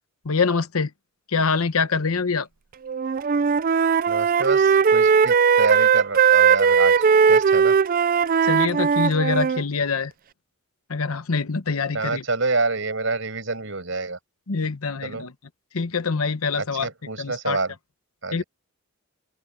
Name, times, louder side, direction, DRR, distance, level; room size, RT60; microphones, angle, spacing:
voice 1, 0.2-0.9 1.3-2.5 8.4-10.1 10.9-12.2 14.5-15.3 15.7-16.9 17.2-17.6 18.3-18.4, left 4 dB, 85° left, 1.0 m, -24 dB
Wind instrument woodwind instrument, 2.9-9.6, right 6 dB, 40° right, 0.4 m, -18 dB
voice 2, 4.1-6.9 7.3-7.8 11.9-14.2 15.0-15.2 16.6-17.7 18.2-18.4, right 3 dB, 60° right, 7.5 m, -27 dB
open air
head